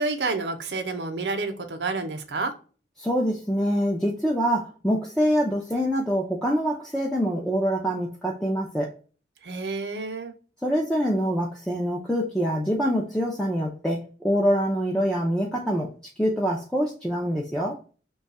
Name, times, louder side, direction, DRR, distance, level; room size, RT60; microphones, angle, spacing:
voice 1, 0.0-2.5 9.4-10.3, right 3 dB, 75° right, 7 dB, 0.7 m, -29 dB
voice 2, 3.0-8.9 10.6-15.9 16.2-17.8, equal, 5° left, -3 dB, 0.5 m, -25 dB
3.1 x 2.3 x 4.0 m, 0.38 s
head